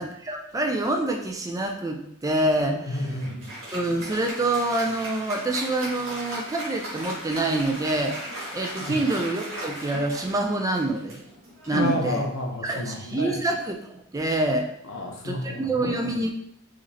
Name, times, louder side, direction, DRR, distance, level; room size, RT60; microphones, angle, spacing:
voice 1, 0.0-3.1 3.7-8.2 8.5-11.2 11.7-12.2 12.6-14.7 15.2-16.4, right 2 dB, 15° right, 2 dB, 0.4 m, -26 dB
voice 2, 2.9-3.5 8.8-9.0 11.7-13.4 14.9-16.0, left 1 dB, 65° left, 1 dB, 0.8 m, -30 dB
Applause, 2.9-12.7, right 1 dB, 65° right, 1.7 m, -38 dB
4.9 x 3.0 x 2.8 m, 0.71 s
head